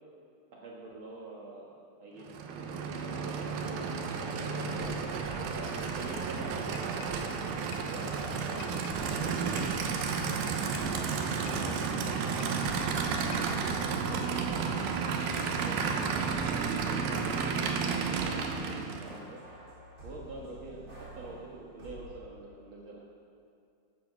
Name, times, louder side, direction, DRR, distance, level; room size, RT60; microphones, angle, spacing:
voice 1, 0.5-1.7 2.0-2.3 2.5-3.8 4.1-4.9 5.4-7.2 7.8-12.5 13.2-14.9 15.3-19.4 20.0-23.0, right 2 dB, 70° right, -4 dB, 1.2 m, -46 dB
Aircraft / Idling, 2.2-19.2, right 5 dB, 90° right, 2.9 m, -32 dB
sound 1, 4.6-7.4 8.0-11.1 11.4-18.5 18.8-22.0, equal, 20° right, 3.4 m, -49 dB
sound 2, 6.7-7.3 7.7-8.0 8.6-9.1 9.6-9.9 10.5-11.0 11.5-11.7 12.4-12.9 13.3-13.6, left 6 dB, 80° left, 2.9 m, -50 dB
14.5 x 8.6 x 6.0 m, 2.4 s
omnidirectional pair, 4.3 m